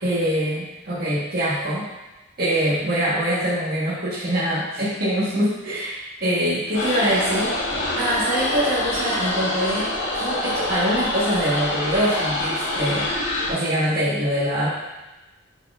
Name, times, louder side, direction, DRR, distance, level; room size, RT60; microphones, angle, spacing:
voice 1, 0.0-1.9 2.4-7.6 8.0-13.1 13.5-14.7, equal, 50° right, -9 dB, 1.6 m, -24 dB
sound 1, 6.7-13.5, left 1 dB, 85° left, 1.5 m, -26 dB
9.7 x 4.1 x 2.6 m, 1.1 s
head